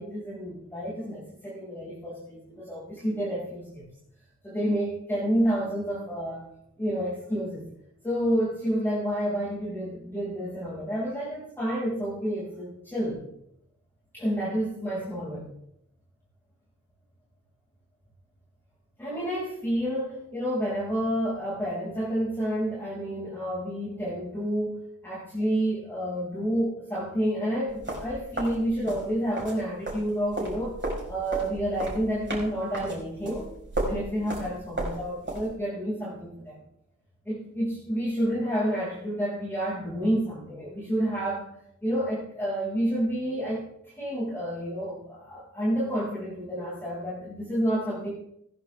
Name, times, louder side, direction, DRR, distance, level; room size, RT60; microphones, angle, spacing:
voice 1, 0.0-3.8 4.4-6.5 6.8-7.6 8.0-13.2 14.1-15.5 19.0-30.8 31.1-33.5 33.8-36.6 37.2-41.5 41.8-48.1, equal, 5° left, -9 dB, 6.0 m, -29 dB
sound 1, 27.7-29.6 29.9-35.5, right 2 dB, 40° right, 5.3 m, -34 dB
18.5 x 10.5 x 3.6 m, 0.77 s
wide cardioid pair, 75°, 30 cm